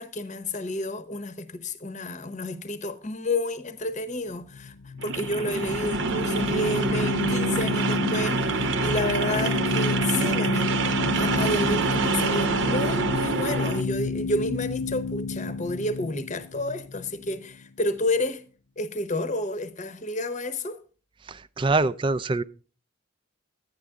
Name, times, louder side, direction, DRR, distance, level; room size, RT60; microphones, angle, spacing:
voice 1, 0.0-18.4 18.8-20.8, left 1 dB, 40° left, 0.9 m, -30 dB
sound 1, 4.4-17.6, left 3 dB, 75° left, 0.5 m, -30 dB
sound 2, 5.0-13.8, right 4 dB, 65° right, 0.8 m, -27 dB
voice 2, 21.2-22.4, right 3 dB, 25° right, 0.4 m, -24 dB
11.0 x 9.4 x 3.6 m
head